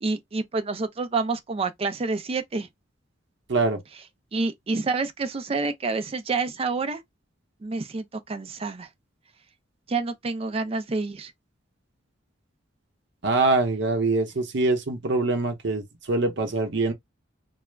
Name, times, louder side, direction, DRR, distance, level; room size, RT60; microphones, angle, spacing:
voice 1, 0.0-2.7 4.3-7.0 7.6-8.9 9.9-11.3, right 3 dB, 30° right, 0.4 m, -28 dB
voice 2, 3.5-3.8 13.2-16.9, right 3 dB, 60° right, 0.7 m, -24 dB
2.3 x 2.0 x 3.2 m
head